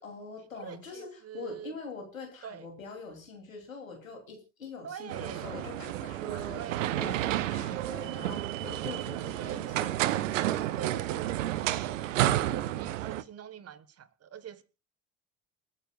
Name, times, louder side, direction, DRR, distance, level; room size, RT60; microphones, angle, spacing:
voice 1, 0.0-7.2 7.5-10.3, left 4 dB, 80° left, 3.2 m, -44 dB
voice 2, 0.6-1.8 2.4-2.7 4.8-5.5 6.5-7.0 9.4-10.3 10.7-14.6, right 9 dB, 40° right, 1.4 m, -44 dB
sound 1, 5.1-13.2, right 13 dB, 70° right, 0.8 m, -31 dB
28.5 x 9.7 x 2.4 m
figure-of-eight pair, 55°, 39 cm